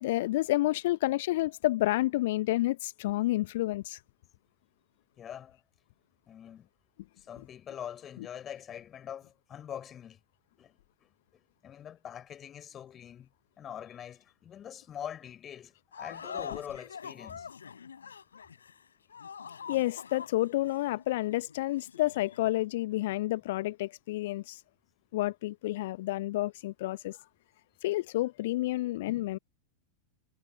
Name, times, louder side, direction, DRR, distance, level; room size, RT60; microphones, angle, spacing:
voice 1, 0.0-4.0 8.2-8.3 19.7-24.6 25.1-27.2 27.8-29.4, left 17 dB, 55° left, 1.2 m, -30 dB
voice 2, 5.2-5.6 6.3-6.7 7.2-10.2 10.6-10.8 11.6-13.3 13.6-17.5, left 9 dB, 25° left, 6.4 m, -44 dB
sound 1, 15.9-22.6, left 6 dB, 70° left, 4.9 m, -45 dB
figure-of-eight pair, 90°, 0 cm